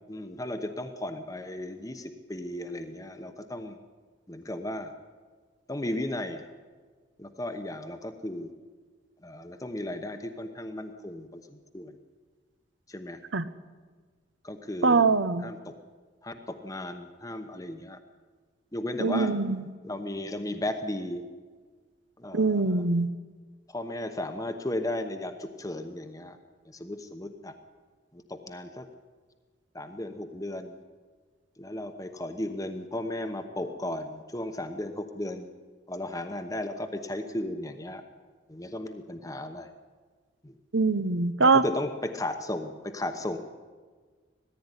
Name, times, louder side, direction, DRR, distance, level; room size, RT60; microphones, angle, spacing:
voice 1, 0.1-3.8 4.3-4.9 5.7-6.5 7.2-8.5 9.2-11.9 12.9-13.2 14.4-15.1 15.4-15.7 16.2-18.0 18.7-19.3 19.8-21.2 22.2-22.8 23.7-26.4 26.6-27.5 28.1-28.9 29.7-30.8 31.6-35.5 35.9-38.0 38.5-39.7 40.4-40.5 41.4-43.4, left 1 dB, 20° left, 6 dB, 1.0 m, -35 dB
voice 2, 14.8-15.5 19.0-19.7 22.3-23.2 40.7-41.6, right 4 dB, 80° right, 13 dB, 1.0 m, -23 dB
19.0 x 15.0 x 9.9 m, 1.5 s
head